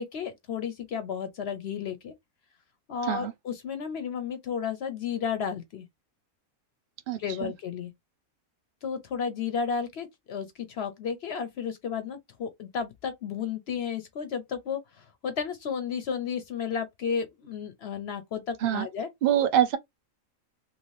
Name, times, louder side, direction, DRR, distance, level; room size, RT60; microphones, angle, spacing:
voice 1, 0.0-2.1 2.9-5.9 7.2-7.9 8.8-19.1, left 6 dB, 60° left, 0.7 m, -33 dB
voice 2, 7.1-7.5 18.6-18.9 19.2-19.8, right 10 dB, 90° right, 0.4 m, -25 dB
3.0 x 2.8 x 3.0 m
omnidirectional pair, 1.5 m